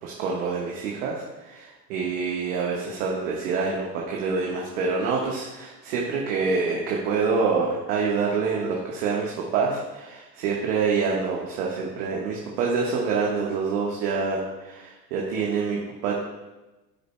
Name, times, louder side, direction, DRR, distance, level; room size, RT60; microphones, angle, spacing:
voice 1, 0.0-16.1, right 5 dB, 60° right, -2 dB, 1.5 m, -26 dB
14.0 x 6.7 x 2.3 m, 1.1 s
hypercardioid pair, 85°, 50 cm